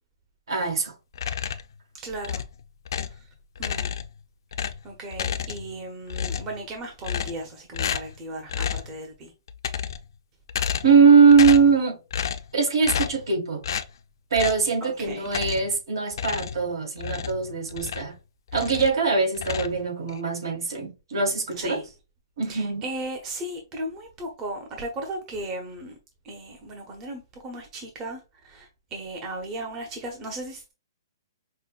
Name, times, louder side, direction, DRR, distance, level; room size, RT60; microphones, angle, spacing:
voice 1, 0.5-0.9 10.8-12.0 12.5-13.6 14.3-18.1 18.5-21.8 22.4-22.8, right 5 dB, 70° right, 1.9 m, -21 dB
sound 1, 1.1-1.8 2.2-3.2 3.6-4.2 4.5-5.8 6.1-6.6 7.0-7.5 7.7-8.2 8.5-8.9 9.5-10.1 10.5-11.0 11.3-11.8 12.1-12.5 12.8-13.3 13.6-13.9 14.3-14.7 15.3-15.8 16.1-18.2 18.5-19.0 19.3-20.2, left 8 dB, 60° left, 0.5 m, -31 dB
voice 2, 2.0-2.4 3.6-3.9 4.8-9.3 14.8-15.3 21.6-21.8 22.5-25.9 26.2-30.7, right 1 dB, 20° right, 0.8 m, -36 dB
5.4 x 2.1 x 2.4 m
hypercardioid pair, 150°, 2 cm